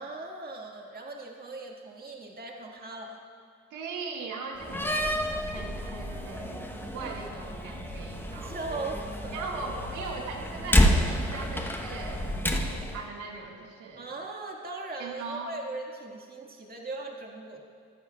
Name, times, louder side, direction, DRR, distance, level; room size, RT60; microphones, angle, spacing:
voice 1, 0.0-3.2 8.3-9.4 14.0-17.6, right 3 dB, 30° right, 0 dB, 1.6 m, -39 dB
voice 2, 3.7-5.0 5.5-8.6 9.3-14.1 15.0-15.5, right 4 dB, 85° right, 0 dB, 1.6 m, -39 dB
Slam, 4.6-13.0, equal, 5° left, 0.8 m, -29 dB
24.5 x 9.6 x 2.3 m, 2.3 s
cardioid pair, 90°, 30 cm